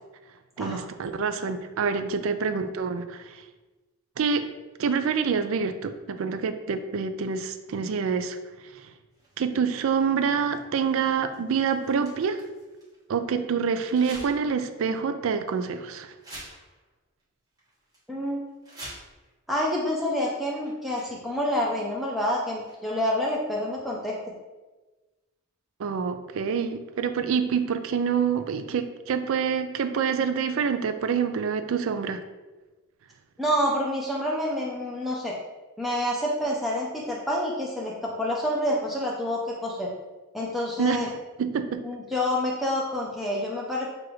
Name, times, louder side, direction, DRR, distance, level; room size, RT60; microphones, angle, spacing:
voice 1, 0.6-3.4 4.2-4.5 4.8-8.4 8.8-8.9 9.4-12.4 13.1-16.1 25.8-32.2 40.8-41.1 41.4-41.9, right 6 dB, 65° right, 9 dB, 0.4 m, -26 dB
sound 1, 9.1-13.0 13.9-14.6 15.0-15.1 15.7-15.8 16.2-17.2 17.6-18.0 18.5-19.3 20.2-20.3 20.6-21.4 22.5-23.0, right 1 dB, 15° right, 1.3 m, -47 dB
voice 2, 18.1-18.4 19.5-24.2 33.4-35.3 35.8-39.9 40.3-41.1 41.8-43.9, left 1 dB, ahead, -4 dB, 0.4 m, -28 dB
6.5 x 2.5 x 3.1 m, 1.2 s
head